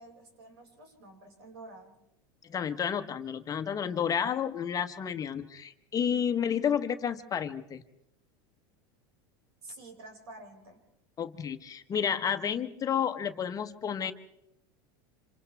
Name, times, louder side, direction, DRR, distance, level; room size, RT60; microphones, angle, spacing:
voice 1, 0.0-2.0 9.6-10.8, right 2 dB, 85° right, 1 dB, 5.7 m, -49 dB
voice 2, 2.4-7.8 11.2-14.1, left 8 dB, 30° left, 8 dB, 1.1 m, -31 dB
28.5 x 27.0 x 3.5 m, 0.82 s
supercardioid pair, 115°, 13 cm